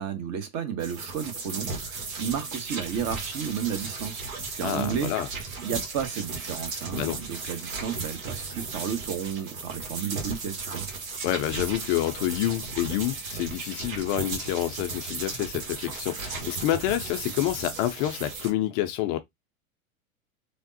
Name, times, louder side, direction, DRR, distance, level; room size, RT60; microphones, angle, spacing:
voice 1, 0.0-4.2 4.5-5.1 5.6-10.8, right 8 dB, 40° right, 0.9 m, -32 dB
sound 1, 0.8-18.5, right 4 dB, 70° right, 1.2 m, -36 dB
voice 2, 4.6-5.3 6.9-7.2 11.2-19.2, left 13 dB, 40° left, 0.4 m, -28 dB
3.3 x 2.0 x 2.6 m
hypercardioid pair, 90°, 41 cm